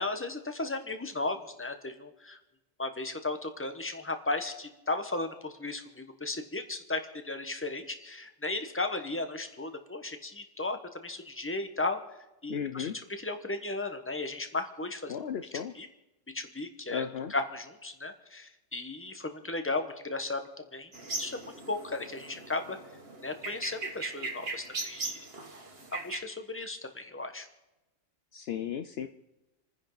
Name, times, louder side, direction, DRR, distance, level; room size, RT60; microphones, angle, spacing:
voice 1, 0.0-2.4 2.8-12.0 12.4-15.2 15.7-15.9 16.3-17.0 17.3-20.4 20.7-22.8 23.2-25.3 25.9-27.5, left 2 dB, 10° left, 7 dB, 1.2 m, -35 dB
voice 2, 12.5-13.0 15.1-15.7 16.9-17.3 28.3-29.1, left 8 dB, 65° left, 9 dB, 0.8 m, -35 dB
sound 1, 20.9-26.2, right 2 dB, 55° right, 1.9 m, -39 dB
29.0 x 10.0 x 4.0 m, 0.97 s
omnidirectional pair, 1.2 m